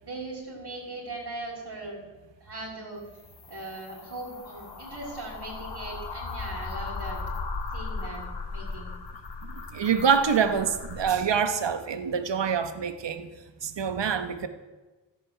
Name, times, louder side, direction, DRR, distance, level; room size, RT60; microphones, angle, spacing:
voice 1, 0.0-2.0 2.4-3.0 3.5-7.2 7.7-8.2 8.5-8.9, right 2 dB, 60° right, -8 dB, 6.3 m, -39 dB
sound 1, 3.0-11.2, left 3 dB, 65° left, 2.3 m, -37 dB
voice 2, 9.7-13.3 13.6-14.5, right 6 dB, 80° right, 10 dB, 1.3 m, -25 dB
14.5 x 11.0 x 9.1 m, 1.2 s
cardioid pair, 70°, 43 cm